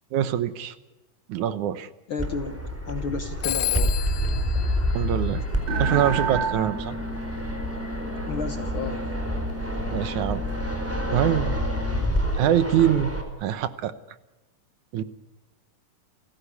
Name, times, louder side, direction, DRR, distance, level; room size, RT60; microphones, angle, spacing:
voice 1, 0.1-0.8 1.3-1.9 4.9-5.4 5.8-7.0 9.9-10.4 11.1-11.6 12.3-13.1 13.4-13.9 14.9-15.0, right 10 dB, 75° right, 13 dB, 2.3 m, -24 dB
voice 2, 2.1-2.6 2.9-4.0 4.5-4.7 8.2-9.1, left 5 dB, 60° left, 8 dB, 1.5 m, -32 dB
Fixed-wing aircraft airplane, 2.2-13.2, equal, 5° right, 3.8 m, -28 dB
Telephone, 3.4-5.9, left 13 dB, 75° left, 1.3 m, -32 dB
sound 1, 5.7-12.0, right 3 dB, 35° right, 3.8 m, -32 dB
30.0 x 16.0 x 8.3 m, 1.0 s
omnidirectional pair, 3.7 m